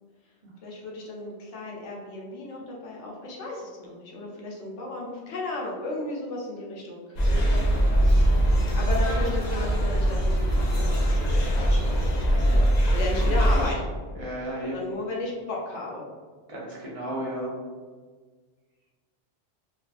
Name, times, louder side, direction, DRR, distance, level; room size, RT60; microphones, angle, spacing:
voice 1, 0.6-7.2 7.9-13.8 14.7-16.0, left 2 dB, 90° left, -2 dB, 1.0 m, -35 dB
sound 1, 7.2-13.7, equal, 55° left, 0.5 m, -22 dB
voice 2, 7.4-7.7 13.3-13.8 14.2-14.7 16.5-17.5, right 1 dB, 35° right, -5 dB, 0.6 m, -34 dB
2.6 x 2.4 x 2.4 m, 1.5 s
omnidirectional pair, 1.2 m